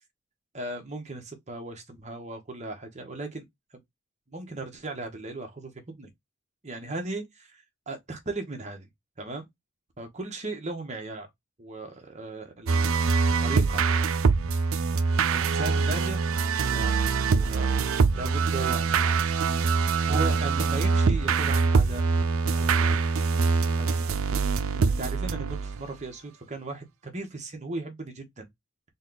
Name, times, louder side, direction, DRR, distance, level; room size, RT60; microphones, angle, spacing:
voice 1, 0.5-3.4 3.7-3.8 4.3-6.1 6.6-8.9 9.2-9.4 10.0-11.3 11.6-13.0 13.4-13.9 15.3-16.3 16.7-17.7 18.1-19.1 20.1-22.0 22.5-23.1 23.7-28.5, right 2 dB, 30° right, 1.1 m, -37 dB
sound 1, 12.7-26.0, right 4 dB, 70° right, 0.5 m, -24 dB
4.2 x 2.4 x 3.8 m
head